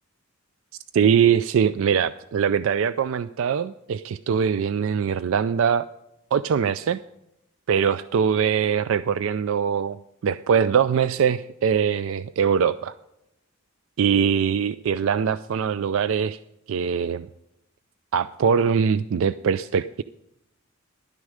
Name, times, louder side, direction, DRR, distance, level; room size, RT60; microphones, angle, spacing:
voice 1, 0.9-5.9 6.3-7.0 7.7-10.0 10.2-12.9 14.0-16.4 16.7-17.3 18.1-20.0, right 7 dB, 65° right, 14 dB, 0.3 m, -22 dB
12.0 x 9.6 x 5.0 m, 0.85 s
head